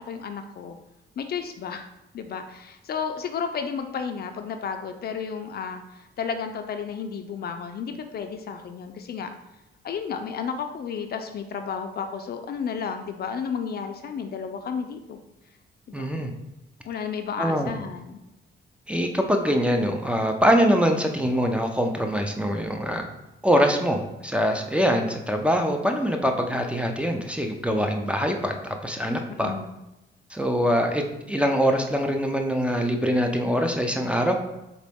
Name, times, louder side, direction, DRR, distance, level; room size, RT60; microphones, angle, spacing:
voice 1, 0.1-0.8 1.2-1.8 2.1-9.3 9.8-15.2 15.9-16.1 16.8-18.2 29.3-29.7, left 6 dB, 50° left, 7 dB, 0.5 m, -32 dB
voice 2, 15.9-16.3 17.4-17.7 18.9-23.1 23.4-29.5 30.3-34.4, equal, 5° right, 4 dB, 0.5 m, -23 dB
4.0 x 3.0 x 3.5 m, 0.93 s
cardioid pair, 90°, 20 cm